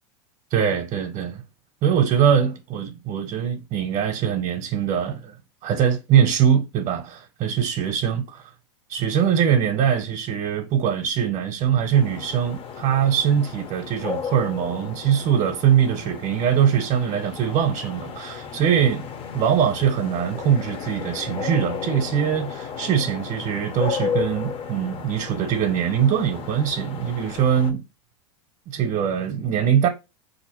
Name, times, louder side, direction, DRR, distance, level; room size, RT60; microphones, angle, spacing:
voice 1, 0.5-1.4 1.8-5.4 5.6-8.2 8.9-19.1 19.3-27.8 28.7-29.9, right 8 dB, 40° right, 0.7 m, -22 dB
sound 1, 11.9-27.7, left 6 dB, 35° left, 0.6 m, -34 dB
3.9 x 2.6 x 2.9 m
hypercardioid pair, 110°, 16 cm